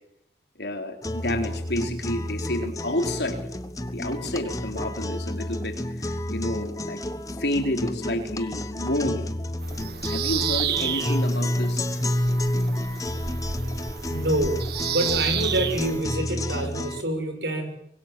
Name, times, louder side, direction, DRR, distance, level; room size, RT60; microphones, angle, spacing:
voice 1, 0.6-3.4 3.9-7.0 7.4-9.3 10.1-11.9, left 1 dB, 70° left, 4 dB, 4.1 m, -29 dB
sound 1, 1.0-17.0, left 1 dB, 20° left, 1.2 m, -30 dB
Bird vocalization bird call bird song, 9.6-16.0, right 10 dB, 60° right, 1.4 m, -31 dB
voice 2, 14.1-14.6 14.9-17.7, right 1 dB, 80° right, 6 dB, 6.6 m, -26 dB
25.0 x 21.5 x 7.8 m, 0.74 s
head